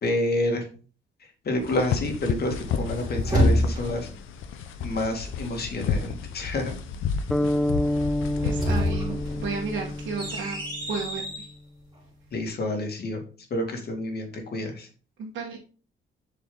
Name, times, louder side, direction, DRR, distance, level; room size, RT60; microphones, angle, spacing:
voice 1, 0.0-0.6 1.5-4.1 4.8-6.7 12.3-13.2 13.5-14.9, left 1 dB, 55° left, 3 dB, 2.2 m, -28 dB
sound 1, 1.6-10.4, left 6 dB, 85° left, 0.9 m, -33 dB
sound 2, 2.7-4.2 8.2-11.5, equal, 20° right, 3.8 m, -27 dB
sound 3, 7.3-11.2, left 1 dB, 5° left, 0.4 m, -28 dB
voice 2, 8.4-10.6 10.9-11.2 15.2-15.6, right 5 dB, 70° right, -3 dB, 1.6 m, -32 dB
6.9 x 4.7 x 3.9 m, 0.39 s
cardioid pair, 90°, 20 cm